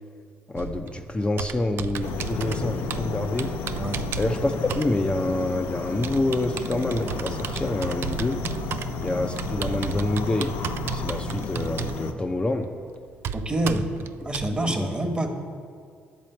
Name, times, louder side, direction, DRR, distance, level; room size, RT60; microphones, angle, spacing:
voice 1, 0.5-3.5 4.2-8.4 9.0-10.6 10.9-12.7 14.6-14.9, left 2 dB, 20° left, 3 dB, 0.6 m, -27 dB
Computer keyboard, 0.6-14.5, right 8 dB, 60° right, 0.4 m, -35 dB
sound 1, 2.0-12.1, left 4 dB, 80° left, 0.7 m, -32 dB
voice 2, 13.3-13.8 14.2-15.3, right 1 dB, 25° right, 4 dB, 1.2 m, -26 dB
10.5 x 4.1 x 7.7 m, 2.2 s
supercardioid pair, 60°, 4 cm